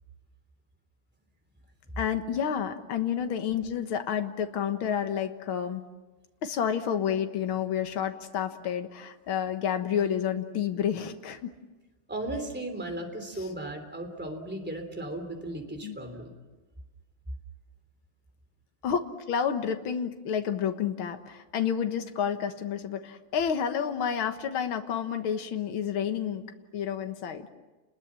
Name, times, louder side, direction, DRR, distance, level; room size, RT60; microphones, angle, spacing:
voice 1, 2.0-5.8 6.4-11.5 13.4-13.5 15.8-16.0 18.8-26.4 26.7-27.5, left 8 dB, 75° left, 7 dB, 2.2 m, -30 dB
voice 2, 12.1-16.3, right 1 dB, 5° right, 5 dB, 3.2 m, -36 dB
30.0 x 21.0 x 7.6 m, 1.2 s
omnidirectional pair, 2.3 m